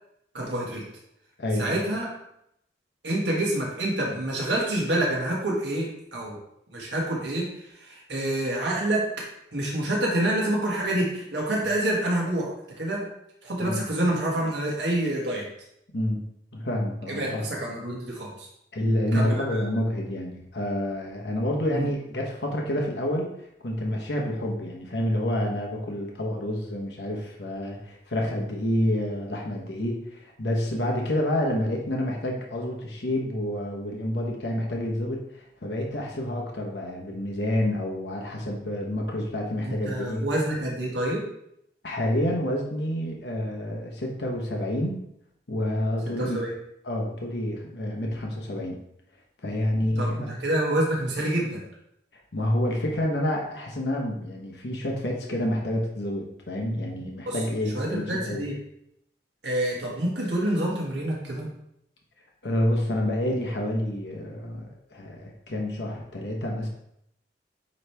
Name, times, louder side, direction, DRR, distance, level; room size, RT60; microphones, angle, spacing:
voice 1, 0.3-0.8 1.6-2.1 3.0-6.4 6.7-7.5 7.7-9.0 9.5-13.0 13.4-15.4 17.1-18.5 19.1-19.6 21.7-21.9 39.6-41.3 46.2-46.5 50.0-51.6 57.3-57.4 57.7-58.6 59.4-61.5, right 1 dB, 75° right, -3 dB, 1.8 m, -27 dB
voice 2, 1.4-1.7 13.7-13.8 15.9-16.2 16.5-17.4 18.7-23.3 23.6-40.3 41.8-45.0 45.5-46.4 46.8-48.8 49.4-50.3 52.1-58.4 62.4-66.7, left 1 dB, 70° left, 0 dB, 1.0 m, -28 dB
9.1 x 3.2 x 3.3 m, 0.78 s
head